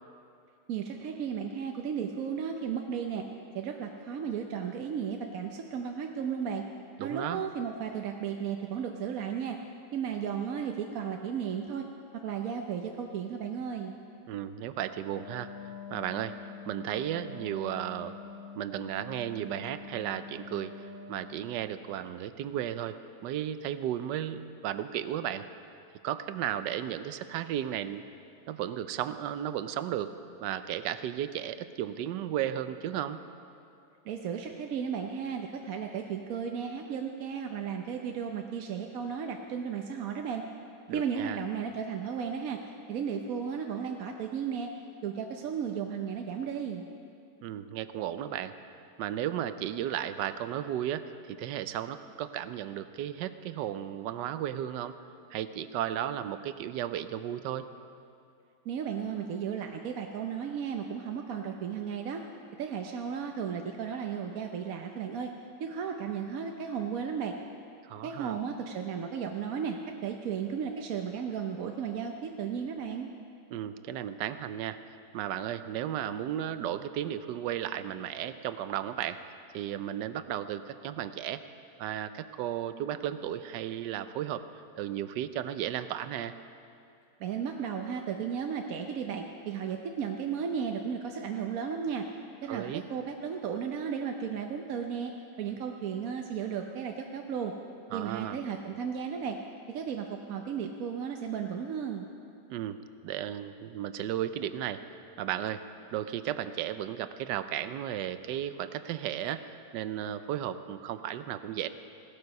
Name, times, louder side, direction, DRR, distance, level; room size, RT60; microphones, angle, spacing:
voice 1, 0.7-3.3 3.5-6.6 7.0-9.6 9.9-11.9 12.1-14.0 34.1-40.4 40.9-42.6 42.9-44.7 45.0-46.8 58.7-62.2 62.6-65.3 65.6-67.4 68.0-73.1 87.2-92.1 92.4-95.1 95.4-97.5 97.9-99.4 99.7-102.1, right 7 dB, 60° right, 3 dB, 1.1 m, -34 dB
voice 2, 7.0-7.4 14.3-15.5 15.9-16.4 16.7-18.2 18.6-23.0 23.2-25.5 26.0-28.0 28.5-30.1 30.4-33.2 40.9-41.4 47.4-48.5 49.0-54.9 55.3-57.7 67.8-68.4 73.5-79.2 79.5-81.4 81.8-84.4 84.8-86.3 92.5-92.8 97.9-98.4 102.5-102.8 103.0-104.8 105.2-105.6 105.9-111.7, right 11 dB, 85° right, 12 dB, 1.3 m, -34 dB
Wind instrument woodwind instrument, 15.0-21.5, left 4 dB, 55° left, 1.8 m, -45 dB
17.0 x 12.5 x 5.3 m, 2.5 s
omnidirectional pair, 1.8 m